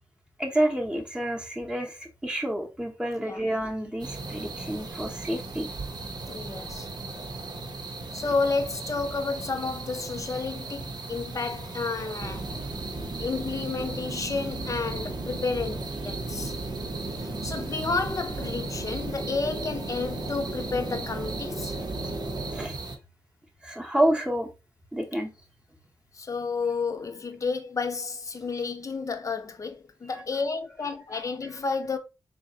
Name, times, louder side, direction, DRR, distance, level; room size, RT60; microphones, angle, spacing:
voice 1, 0.4-5.7 22.5-22.7 23.6-24.5 24.9-25.3 30.1-30.2, right 1 dB, 10° right, 0.8 m, -28 dB
sound 1, 4.0-23.0, right 3 dB, 55° right, 0.8 m, -38 dB
voice 2, 6.3-6.9 8.1-12.5 13.2-16.5 17.2-21.7 26.1-32.0, left 4 dB, 40° left, 0.5 m, -31 dB
sound 2, 12.2-22.7, right 2 dB, 75° right, 1.1 m, -36 dB
4.0 x 3.3 x 2.7 m
wide cardioid pair, 150°, 9 cm